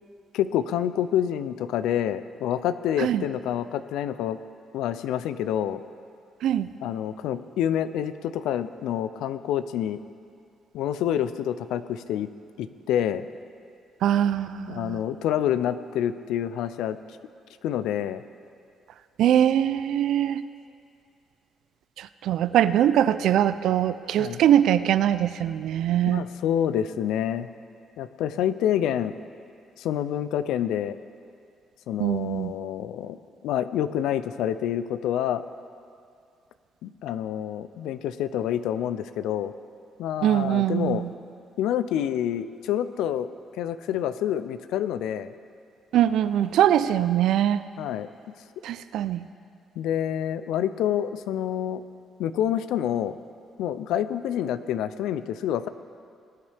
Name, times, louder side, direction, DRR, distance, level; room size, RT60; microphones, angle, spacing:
voice 1, 0.3-4.4 4.7-5.8 6.8-10.0 10.7-12.3 12.6-13.3 14.7-17.0 17.6-18.2 24.2-24.4 26.1-27.5 28.0-29.2 29.8-31.0 31.9-33.2 33.4-35.4 36.8-39.5 40.0-41.0 41.6-43.3 43.6-45.3 47.8-48.1 49.8-51.8 52.2-53.2 53.6-55.7, left 10 dB, 90° left, 13 dB, 0.4 m, -27 dB
voice 2, 14.0-15.0 19.2-20.4 22.0-26.2 32.0-32.5 40.2-41.1 45.9-47.6 48.6-49.2, right 11 dB, 80° right, 14 dB, 0.4 m, -22 dB
19.5 x 9.7 x 3.4 m, 2.4 s
cardioid pair, 90°, 0 cm